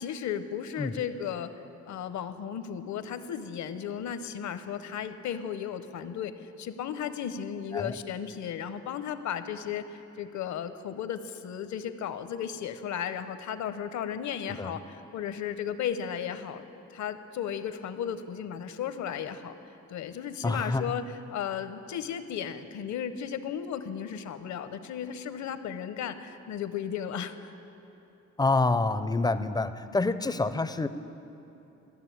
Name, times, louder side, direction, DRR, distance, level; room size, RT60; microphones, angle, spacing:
voice 1, 0.0-1.5 1.9-16.7 16.9-19.5 19.9-21.0 21.3-27.5, left 8 dB, 70° left, 11 dB, 0.8 m, -35 dB
voice 2, 20.4-21.0 28.4-30.9, left 3 dB, 15° left, 12 dB, 0.4 m, -27 dB
13.5 x 6.7 x 9.2 m, 2.9 s
cardioid pair, 90°, 30 cm